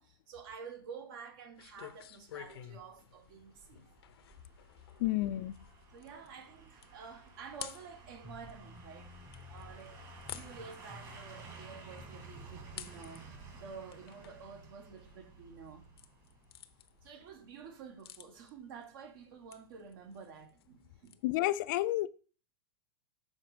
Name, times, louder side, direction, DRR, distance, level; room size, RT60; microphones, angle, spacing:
voice 1, 0.0-3.8 5.9-9.1 9.5-13.3 13.5-15.8 17.0-21.2, right 6 dB, 60° right, 1.5 m, -50 dB
sound 1, 1.5-21.1, left 11 dB, 75° left, 0.8 m, -54 dB
sound 2, 2.5-17.4 17.7-17.8, right 3 dB, 30° right, 1.9 m, -54 dB
voice 2, 5.0-5.5 21.2-22.1, left 16 dB, 55° left, 0.4 m, -30 dB
sound 3, 8.2-13.6, equal, 15° right, 0.9 m, -54 dB
6.3 x 3.9 x 5.0 m
hypercardioid pair, 130°, 13 cm